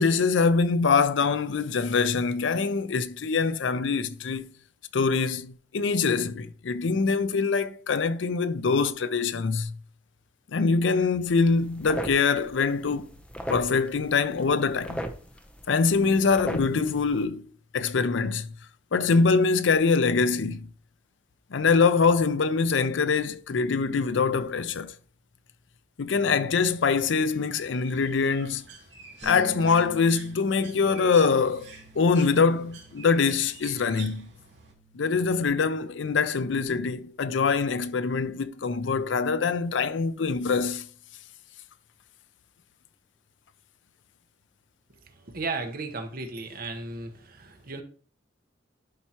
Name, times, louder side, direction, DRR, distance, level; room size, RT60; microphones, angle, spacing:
voice 1, 0.0-4.5 4.9-9.7 10.5-13.1 13.5-15.0 15.7-18.5 18.9-20.7 21.5-24.9 26.0-28.6 29.2-34.3 34.9-40.9, left 4 dB, 75° left, 0.5 m, -24 dB
sound 1, 11.2-17.2, equal, 5° left, 0.7 m, -39 dB
Bird, 26.6-34.7, right 5 dB, 75° right, 2.5 m, -48 dB
Bass guitar, 29.2-35.5, right 2 dB, 10° right, 1.7 m, -47 dB
voice 2, 45.3-47.8, right 3 dB, 50° right, 1.0 m, -34 dB
11.0 x 4.6 x 2.9 m
head